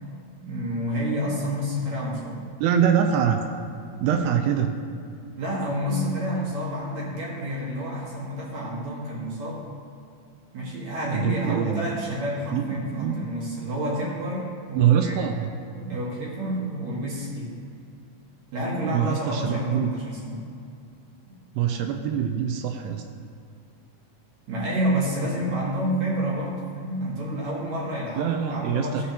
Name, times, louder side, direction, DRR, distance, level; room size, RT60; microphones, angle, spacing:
voice 1, 0.4-2.4 5.4-9.6 10.5-15.2 15.6-17.6 18.5-20.4 24.5-29.1, equal, 55° right, -5 dB, 2.5 m, -29 dB
voice 2, 2.6-3.4 4.0-4.8 11.1-11.9 12.5-13.3 14.7-15.5 18.9-19.9 21.5-23.0 28.2-29.0, right 8 dB, 85° right, 5 dB, 2.6 m, -24 dB
15.5 x 8.9 x 2.9 m, 2.4 s
omnidirectional pair, 4.7 m